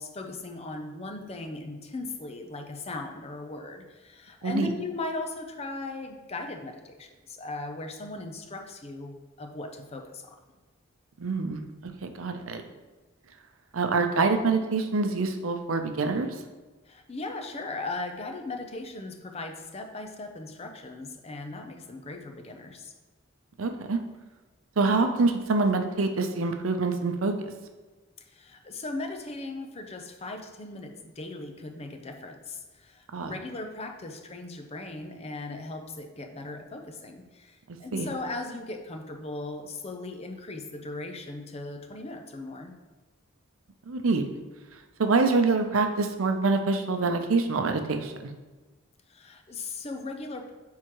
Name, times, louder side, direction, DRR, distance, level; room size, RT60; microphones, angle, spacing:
voice 1, 0.0-10.4 16.9-22.9 28.3-42.7 49.1-50.5, left 2 dB, 30° left, 4 dB, 0.6 m, -38 dB
voice 2, 11.2-12.6 13.7-16.3 23.6-24.0 24.8-27.3 33.1-33.3 37.9-38.1 43.9-44.2 45.0-48.1, right 3 dB, 90° right, 6 dB, 0.6 m, -25 dB
9.1 x 3.7 x 3.0 m, 1.2 s
head